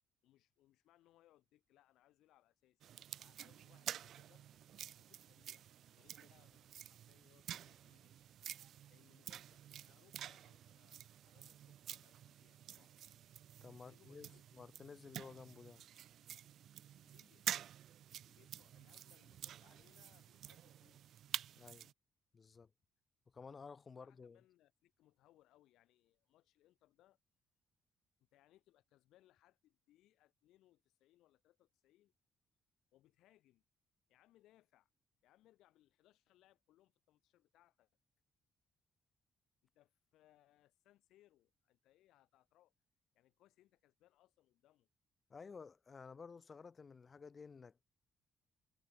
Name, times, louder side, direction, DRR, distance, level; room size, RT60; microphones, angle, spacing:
voice 1, 0.2-4.6 5.0-8.2 8.9-13.0 13.8-14.4 17.0-17.7 18.3-21.0 24.0-27.2 28.3-32.1 32.9-33.6 34.1-34.9 35.2-37.9 39.7-42.7 43.1-44.9, left 14 dB, 90° left, 2.4 m, -72 dB
sound 1, 2.8-21.9, right 11 dB, 65° right, 1.0 m, -49 dB
voice 2, 13.6-15.8 21.6-21.9 22.3-22.7 23.3-24.4 45.3-47.9, left 5 dB, 30° left, 1.4 m, -54 dB
cardioid pair, 120°, 0 cm